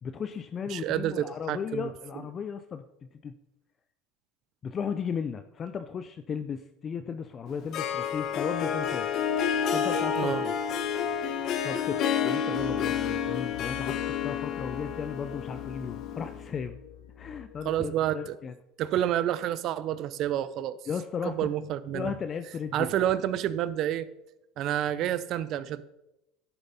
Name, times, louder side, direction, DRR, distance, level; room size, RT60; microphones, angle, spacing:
voice 1, 0.0-2.8 3.1-3.3 4.6-9.1 9.7-10.5 11.6-16.8 17.2-18.5 20.9-21.5 21.9-23.1, left 6 dB, 30° left, 10 dB, 0.4 m, -35 dB
voice 2, 0.7-1.8 10.2-10.4 17.6-18.4 18.8-20.8 21.2-22.1 22.7-24.1 24.6-25.8, right 11 dB, 50° right, 16 dB, 0.5 m, -29 dB
Harp, 7.5-16.4, left 7 dB, 50° left, 1.0 m, -30 dB
sound 1, 12.6-17.9, left 11 dB, 85° left, 0.7 m, -43 dB
11.5 x 7.0 x 4.1 m, 0.91 s
supercardioid pair, 120°, 0 cm